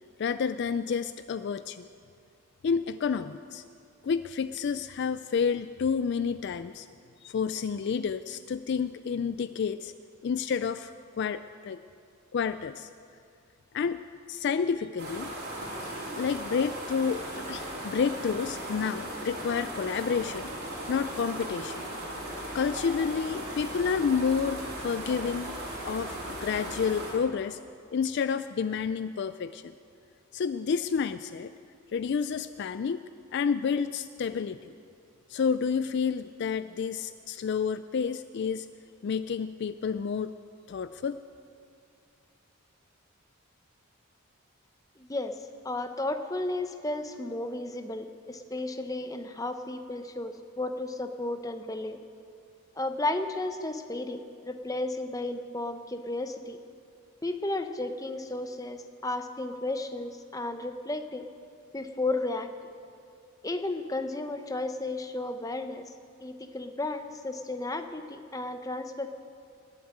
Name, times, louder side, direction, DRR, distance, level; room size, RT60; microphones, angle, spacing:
voice 1, 0.2-1.9 2.6-3.6 4.0-6.9 7.2-9.9 10.2-11.8 12.3-12.9 13.7-14.0 14.3-15.3 16.2-20.5 20.9-21.9 22.5-25.5 25.9-27.6 27.9-29.7 30.3-31.5 31.9-33.0 33.3-34.6 35.3-38.7 39.0-40.3 40.7-41.2, left 6 dB, 50° left, 12 dB, 0.3 m, -30 dB
sound 1, 15.0-27.1, right 1 dB, 45° right, 4.2 m, -37 dB
voice 2, 45.0-45.4 45.6-52.0 52.8-56.6 57.2-61.3 61.7-62.5 63.4-65.9 66.2-69.1, left 2 dB, 15° left, 7 dB, 0.7 m, -33 dB
21.0 x 7.4 x 8.6 m, 2.4 s
head